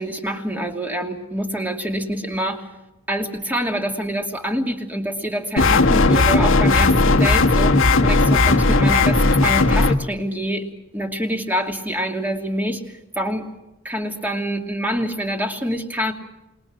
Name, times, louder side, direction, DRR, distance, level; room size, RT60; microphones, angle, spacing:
voice 1, 0.0-2.7 3.1-10.7 10.9-13.5 13.8-16.1, equal, 10° right, 3 dB, 2.7 m, -26 dB
sound 1, 5.6-10.0, left 3 dB, 60° left, 1.4 m, -16 dB
27.5 x 21.5 x 6.4 m, 0.97 s
head